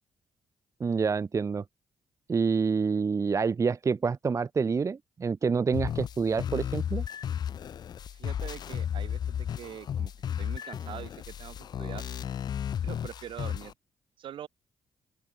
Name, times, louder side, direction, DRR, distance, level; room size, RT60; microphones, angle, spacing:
voice 1, 0.8-1.6 2.3-7.0, right 5 dB, 35° right, 0.7 m, -27 dB
sound 1, 5.7-13.7, left 9 dB, 50° left, 0.4 m, -34 dB
voice 2, 8.1-10.1 10.4-12.1 12.8-13.7 14.2-14.5, right 10 dB, 75° right, 2.5 m, -43 dB
open air
supercardioid pair, 65°, 9 cm